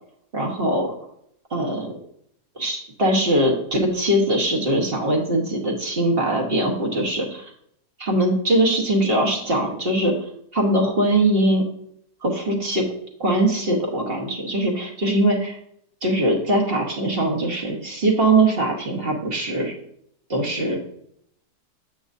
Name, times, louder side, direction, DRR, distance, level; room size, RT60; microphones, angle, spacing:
voice 1, 0.3-0.9 1.5-1.9 2.6-7.4 8.0-10.1 10.5-11.7 12.2-12.8 13.2-15.6 16.0-19.7 20.3-20.8, right 1 dB, 40° right, 0 dB, 1.4 m, -21 dB
7.7 x 7.4 x 2.7 m, 0.72 s
omnidirectional pair, 1.7 m